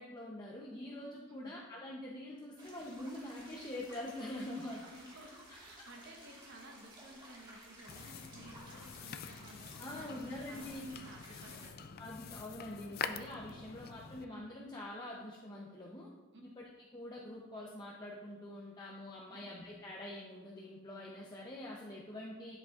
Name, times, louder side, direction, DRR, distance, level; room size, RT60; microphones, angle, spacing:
voice 1, 0.0-4.8 9.8-10.9 12.0-16.1 16.6-16.7 16.9-22.6, left 1 dB, 20° left, -3 dB, 0.7 m, -45 dB
sound 1, 2.6-11.7, right 1 dB, 20° right, 1.6 m, -56 dB
voice 2, 4.8-11.9 13.5-13.6 16.3-16.4, right 1 dB, 55° right, 1 dB, 1.0 m, -55 dB
sound 2, 7.9-14.2, left 6 dB, 45° left, 0.3 m, -46 dB
9.8 x 7.6 x 2.4 m, 1.3 s
head